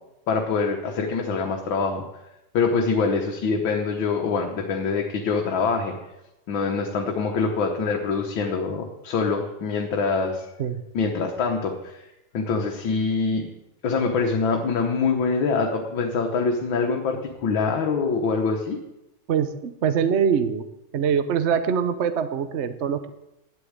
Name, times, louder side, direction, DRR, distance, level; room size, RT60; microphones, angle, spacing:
voice 1, 0.3-2.0 2.5-6.0 6.5-10.5 10.9-12.1 12.3-13.5 13.8-18.8, left 4 dB, 80° left, 2 dB, 2.0 m, -24 dB
voice 2, 19.3-20.6 20.9-23.1, right 7 dB, 60° right, 10 dB, 0.7 m, -23 dB
10.5 x 8.2 x 8.8 m, 0.93 s
omnidirectional pair, 2.1 m